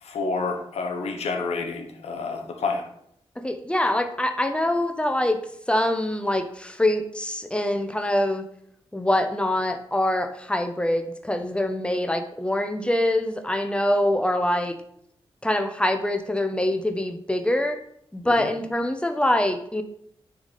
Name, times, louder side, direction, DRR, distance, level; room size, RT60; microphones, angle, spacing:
voice 1, 0.0-2.8 18.2-18.5, left 4 dB, 85° left, 3 dB, 1.0 m, -29 dB
voice 2, 3.4-5.4 5.7-8.5 8.9-14.8 15.4-17.8 18.1-19.8, left 1 dB, 10° left, 6 dB, 0.9 m, -24 dB
9.5 x 3.5 x 4.1 m, 0.70 s
cardioid pair, 55°, 11 cm